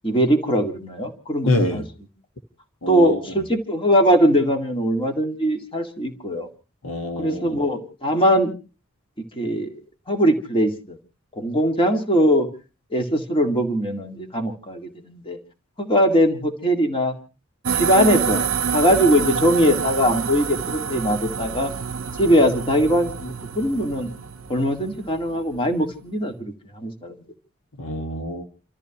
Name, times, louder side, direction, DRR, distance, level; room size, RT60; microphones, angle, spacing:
voice 1, 0.0-1.8 2.9-6.5 7.2-8.5 9.4-9.8 10.1-11.0 11.4-12.5 12.9-15.4 15.8-17.2 17.7-18.4 18.7-21.7 22.2-24.1 24.5-27.2, equal, 25° left, 1.9 m, -21 dB
voice 2, 1.4-1.8 2.8-3.2 6.8-7.6 27.8-28.5, left 1 dB, 80° left, 1.5 m, -25 dB
sound 1, 17.7-25.3, right 6 dB, 70° right, 0.7 m, -27 dB
29.5 x 13.5 x 2.9 m
head